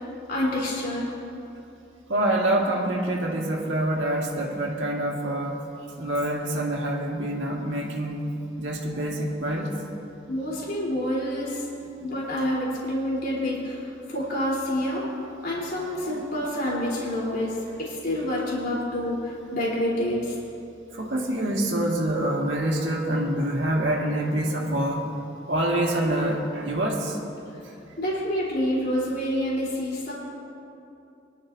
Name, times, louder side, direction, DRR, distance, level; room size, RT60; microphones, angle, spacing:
voice 1, 0.3-1.1 10.3-11.7 12.0-15.0 15.4-20.4 28.0-30.1, left 1 dB, 55° left, -6 dB, 3.7 m, -27 dB
voice 2, 2.1-9.7 15.9-16.2 20.9-25.2 25.5-28.0, right 1 dB, 75° right, -2 dB, 1.9 m, -26 dB
23.5 x 11.5 x 2.7 m, 2.8 s
head